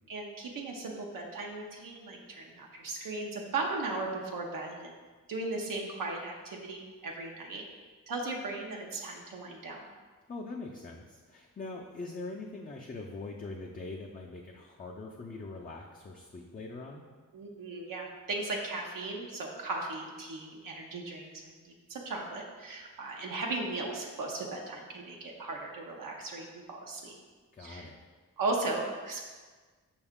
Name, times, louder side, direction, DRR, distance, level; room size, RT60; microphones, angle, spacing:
voice 1, 0.1-5.0 5.3-7.6 8.1-9.9 17.3-27.2 27.6-27.9 28.4-29.2, right 3 dB, 75° right, 0 dB, 0.6 m, -37 dB
voice 2, 10.3-17.0 27.5-28.0, left 3 dB, 25° left, -1 dB, 0.4 m, -42 dB
5.3 x 2.4 x 3.5 m, 1.4 s
cardioid pair, 55°, 33 cm